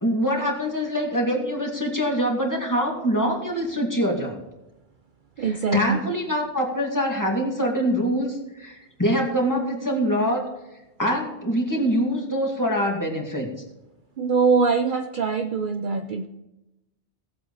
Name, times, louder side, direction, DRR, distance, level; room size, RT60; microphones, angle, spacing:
voice 1, 0.0-4.4 5.4-10.5 11.0-13.5, equal, 15° left, -1 dB, 2.4 m, -24 dB
voice 2, 5.4-6.1 14.2-16.3, right 5 dB, 55° right, 6 dB, 0.7 m, -23 dB
17.5 x 7.8 x 4.2 m, 0.96 s
omnidirectional pair, 1.1 m